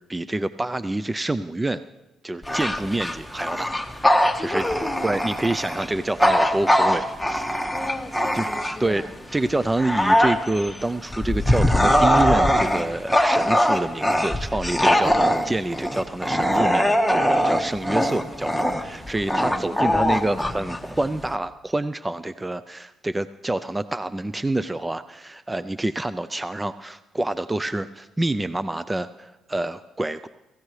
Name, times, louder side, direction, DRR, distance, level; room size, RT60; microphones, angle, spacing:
voice 1, 0.1-1.8 2.2-3.7 4.4-4.6 5.0-7.5 8.3-8.5 8.8-9.0 9.3-30.3, right 2 dB, 15° right, 13 dB, 0.5 m, -27 dB
Bark / Growling, 2.4-9.0 9.5-21.3, equal, ahead, 1.5 m, -21 dB
voice 2, 4.3-5.4 7.7-9.1 19.5-21.0, left 2 dB, 20° left, 5 dB, 2.2 m, -34 dB
25.0 x 15.5 x 3.3 m, 1.0 s
supercardioid pair, 70°, 0 cm